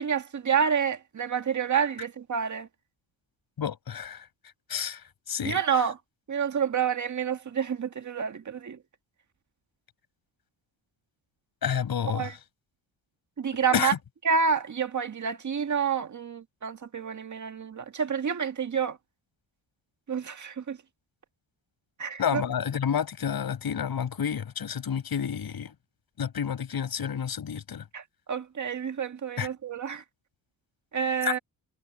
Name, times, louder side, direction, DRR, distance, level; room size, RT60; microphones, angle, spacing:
voice 1, 0.0-2.7 5.4-6.0 6.3-8.8 12.1-12.3 13.4-13.9 14.3-19.0 20.1-20.8 22.0-22.4 27.9-28.0 28.3-30.0 30.9-31.4, right 6 dB, 45° right, 1.9 m, -28 dB
voice 2, 3.6-4.2 4.7-5.0 5.3-5.6 11.6-12.3 13.7-14.0 22.2-25.7 26.2-27.8 29.4-29.5 31.3-31.4, left 8 dB, 60° left, 6.0 m, -29 dB
cardioid pair, 115°, 42 cm